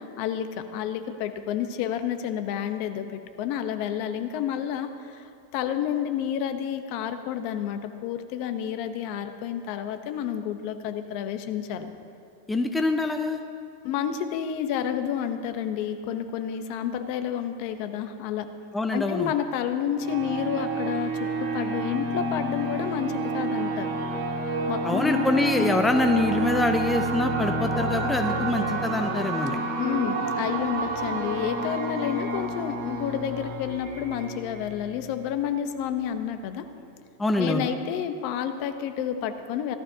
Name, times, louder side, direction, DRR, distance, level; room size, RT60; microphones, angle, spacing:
voice 1, 0.0-5.3 5.5-11.9 13.8-18.5 18.9-21.1 21.4-23.9 24.7-25.2 25.6-25.8 29.8-36.6 37.4-39.8, left 9 dB, 45° left, 8 dB, 0.8 m, -30 dB
voice 2, 12.5-13.4 18.7-19.3 24.8-29.6 37.2-37.7, left 2 dB, 5° left, 5 dB, 0.4 m, -25 dB
sound 1, 20.0-35.3, right 2 dB, 70° right, 3.4 m, -29 dB
17.5 x 12.0 x 2.8 m, 2.4 s
supercardioid pair, 155°, 0 cm